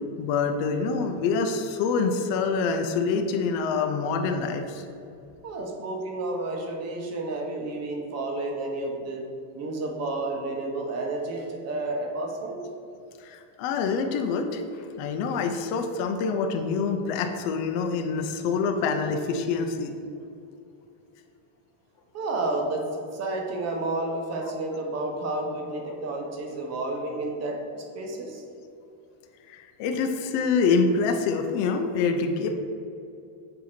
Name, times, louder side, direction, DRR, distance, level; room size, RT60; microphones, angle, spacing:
voice 1, 0.2-4.8 13.2-19.9 25.9-26.2 29.5-32.5, left 5 dB, 80° left, 5 dB, 0.7 m, -26 dB
voice 2, 5.4-9.3 9.5-12.6 22.1-28.4, right 2 dB, 35° right, 1 dB, 0.9 m, -31 dB
7.7 x 2.8 x 5.9 m, 2.6 s
cardioid pair, 165°, 47 cm